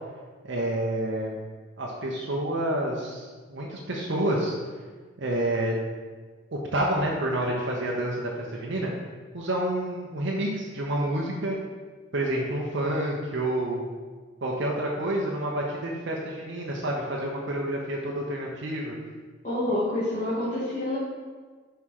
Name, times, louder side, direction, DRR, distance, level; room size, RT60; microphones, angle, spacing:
voice 1, 0.4-1.4 1.8-4.5 5.2-5.7 6.5-8.9 9.3-11.6 12.1-13.9 14.4-18.9, right 1 dB, 65° right, -2 dB, 0.9 m, -28 dB
voice 2, 19.4-21.0, left 1 dB, 45° left, -11 dB, 1.9 m, -27 dB
5.7 x 5.6 x 4.8 m, 1.4 s
head